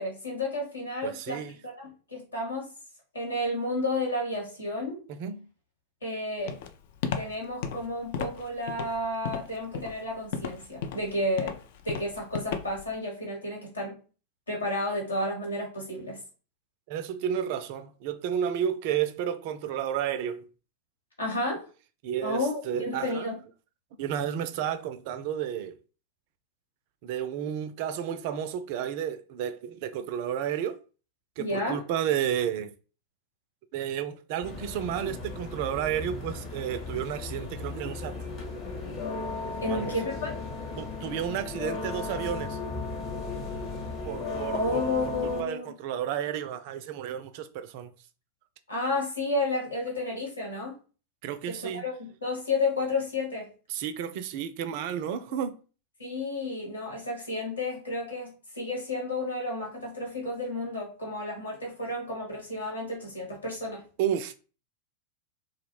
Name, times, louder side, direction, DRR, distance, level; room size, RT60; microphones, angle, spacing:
voice 1, 0.0-2.7 3.1-5.0 6.0-6.6 7.1-11.5 11.8-14.0 14.5-16.2 21.2-21.6 22.2-23.4 31.4-31.8 39.6-40.3 44.5-45.7 48.7-50.8 51.5-53.5 56.0-63.8, left 2 dB, 80° left, 1.2 m, -31 dB
voice 2, 1.0-1.6 5.1-5.5 16.9-20.5 22.0-23.3 24.0-25.7 27.0-30.8 31.4-32.7 33.7-38.2 39.6-39.9 40.8-42.6 44.0-47.9 51.2-51.8 53.7-55.6 64.0-64.3, right 9 dB, 50° right, 0.3 m, -32 dB
Walk footsteps, 6.5-12.9, left 6 dB, 55° left, 0.3 m, -34 dB
sound 1, 34.4-45.4, left 3 dB, 40° left, 0.9 m, -36 dB
2.3 x 2.1 x 3.1 m
figure-of-eight pair, 90°, 0 cm